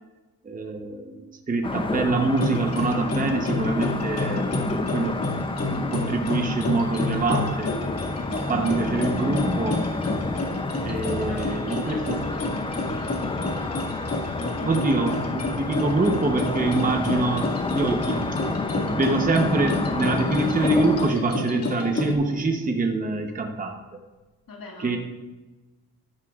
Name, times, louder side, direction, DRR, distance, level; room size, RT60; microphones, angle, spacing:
voice 1, 0.4-1.2 1.5-4.5 4.9-5.2 5.7-7.7 8.3-9.8 10.8-12.2 14.4-18.2 18.9-23.8 24.8-25.0, right 3 dB, 25° right, 4 dB, 0.9 m, -25 dB
sound 1, 1.6-21.1, left 3 dB, 15° left, 0.5 m, -29 dB
sound 2, 2.2-22.1, left 2 dB, 45° left, 2.1 m, -30 dB
voice 2, 11.2-13.2 24.5-25.0, left 2 dB, 70° left, -2 dB, 2.1 m, -40 dB
13.0 x 11.5 x 2.4 m, 1.2 s
wide cardioid pair, 125°, 36 cm